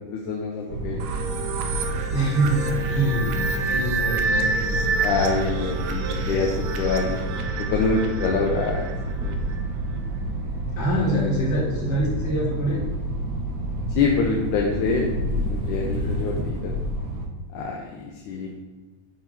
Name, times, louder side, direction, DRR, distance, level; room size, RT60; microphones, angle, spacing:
voice 1, 0.1-1.0 5.0-6.5 6.8-7.3 7.7-8.9 9.2-9.3 13.9-15.1 15.5-16.7 17.5-18.5, left 4 dB, 75° left, 0 dB, 2.1 m, -25 dB
sound 1, 0.7-17.3, right 1 dB, 90° right, 3.0 m, -29 dB
sound 2, 1.0-9.6, right 4 dB, 75° right, 1.8 m, -29 dB
voice 2, 2.1-3.4 3.6-4.7 10.8-12.9 15.9-16.4, right 1 dB, 45° left, -5 dB, 3.3 m, -25 dB
8.2 x 4.5 x 5.2 m, 1.3 s
omnidirectional pair, 3.8 m